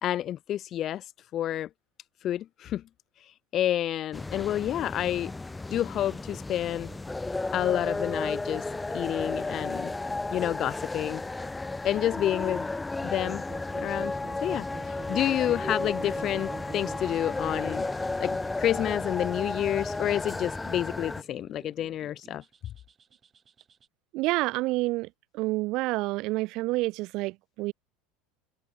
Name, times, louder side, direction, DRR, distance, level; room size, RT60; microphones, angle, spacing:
voice 1, 0.0-1.7 2.2-2.8 3.2-5.3 5.7-6.9 7.5-8.6 8.9-9.9 10.3-11.2 11.8-12.7 13.0-13.4 13.8-14.1 14.4-17.8 18.2-22.4, left 11 dB, 40° left, 0.4 m, -29 dB
sound 1, 4.1-21.2, left 2 dB, 10° left, 1.4 m, -33 dB
sound 2, 6.1-23.9, right 6 dB, 25° right, 1.4 m, -49 dB
voice 2, 24.1-25.1 25.3-27.7, right 21 dB, 60° right, 0.5 m, -28 dB
supercardioid pair, 120°, 0 cm